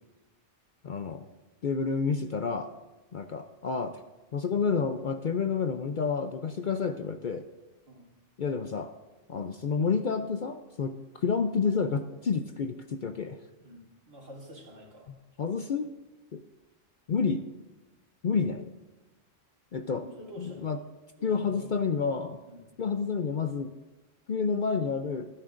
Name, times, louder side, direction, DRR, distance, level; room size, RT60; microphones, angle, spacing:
voice 1, 0.8-1.2 1.6-2.7 3.1-4.0 4.3-7.5 8.4-8.9 9.3-13.4 15.4-15.9 16.3-16.4 17.1-17.4 18.2-18.7 19.7-20.0 20.4-20.8 21.2-22.4 22.8-23.7 24.3-25.3, left 5 dB, 55° left, 7 dB, 0.6 m, -29 dB
voice 2, 13.6-15.1 19.8-20.7 21.1-21.7 22.5-22.7, equal, 90° right, -4 dB, 3.6 m, -48 dB
24.0 x 9.9 x 2.5 m, 1.2 s
omnidirectional pair, 1.3 m